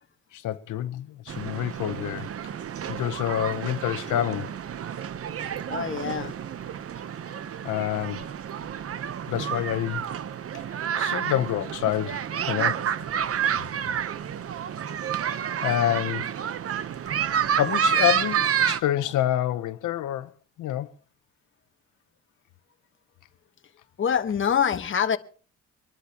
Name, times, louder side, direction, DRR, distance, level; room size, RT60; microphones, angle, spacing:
voice 1, 0.3-2.3 2.9-4.5 7.6-8.3 9.3-10.1 10.5-10.6 10.9-12.9 15.6-16.3 17.5-20.3 20.6-20.9, left 12 dB, 80° left, 0.9 m, -27 dB
sound 1, 1.3-18.8, right 8 dB, 50° right, 0.9 m, -29 dB
voice 2, 5.7-6.3 24.0-25.2, left 8 dB, 40° left, 1.3 m, -25 dB
25.0 x 11.5 x 2.9 m
cardioid pair, 90°, 30 cm